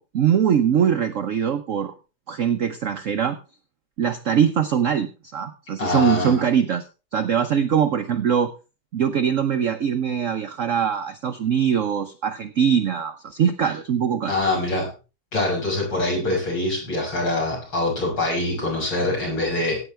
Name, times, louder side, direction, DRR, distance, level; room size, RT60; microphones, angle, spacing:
voice 1, 0.0-1.9 2.3-3.4 4.0-6.9 7.1-8.5 8.9-14.3, right 8 dB, 60° right, 7 dB, 0.8 m, -22 dB
voice 2, 5.8-6.4 14.3-14.9 15.3-19.8, left 2 dB, 80° left, -3 dB, 7.3 m, -24 dB
17.5 x 8.9 x 3.3 m, 0.32 s
omnidirectional pair, 2.1 m